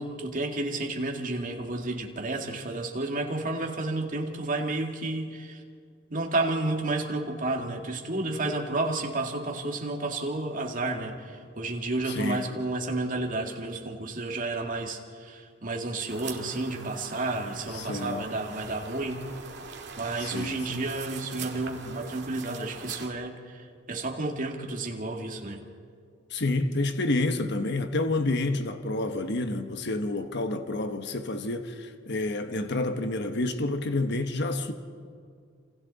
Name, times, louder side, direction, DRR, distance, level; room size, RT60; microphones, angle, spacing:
voice 1, 0.0-5.6 6.1-19.2 20.0-25.6, right 2 dB, 45° right, 2.1 m, -31 dB
voice 2, 12.1-12.4 17.7-18.5 20.2-20.8 26.3-34.7, left 2 dB, 60° left, 1.3 m, -29 dB
sound 1, 16.1-23.1, right 5 dB, 60° right, 2.2 m, -42 dB
28.5 x 27.0 x 4.1 m
head